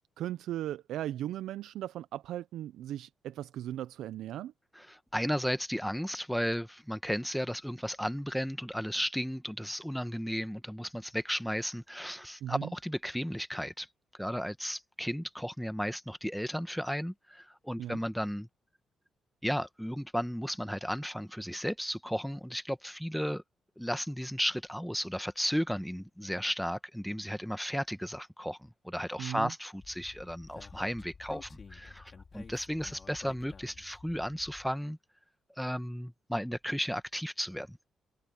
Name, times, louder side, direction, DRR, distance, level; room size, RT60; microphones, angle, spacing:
voice 1, 0.2-4.5 12.4-12.7 17.8-18.0 29.2-29.5, right 12 dB, 80° right, 0.5 m, -37 dB
voice 2, 4.7-13.9 14.2-18.5 19.4-23.4 23.8-35.0 35.6-37.8, equal, ahead, 1.1 m, -34 dB
Speech, 29.8-34.7, left 5 dB, 40° left, 5.1 m, -51 dB
cardioid pair, 90°, 0 cm